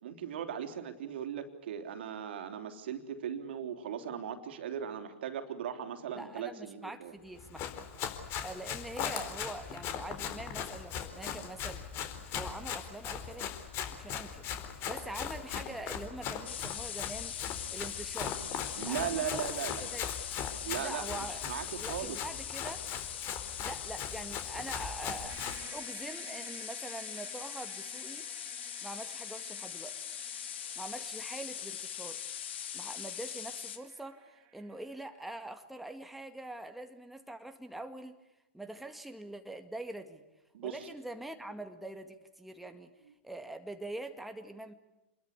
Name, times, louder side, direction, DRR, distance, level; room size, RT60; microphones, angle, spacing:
voice 1, 0.0-7.1 18.8-19.8 20.6-22.2 40.5-40.9, right 9 dB, 60° right, 7 dB, 3.5 m, -38 dB
voice 2, 6.2-7.8 8.1-11.9 12.3-13.5 13.9-17.4 17.7-18.4 18.7-19.5 19.9-20.1 20.8-21.4 21.8-22.9 23.6-28.3 28.8-30.0 30.8-32.2 32.7-38.2 38.5-40.2 40.6-42.9 43.2-44.7, right 1 dB, ahead, 6 dB, 2.0 m, -44 dB
Run, 7.4-25.6, left 8 dB, 35° left, 4.2 m, -39 dB
sound 1, 16.4-33.8, left 9 dB, 65° left, 2.7 m, -41 dB
sound 2, 25.3-35.5, right 10 dB, 35° right, 3.5 m, -55 dB
29.0 x 22.0 x 8.4 m, 0.97 s
figure-of-eight pair, 105°, 7 cm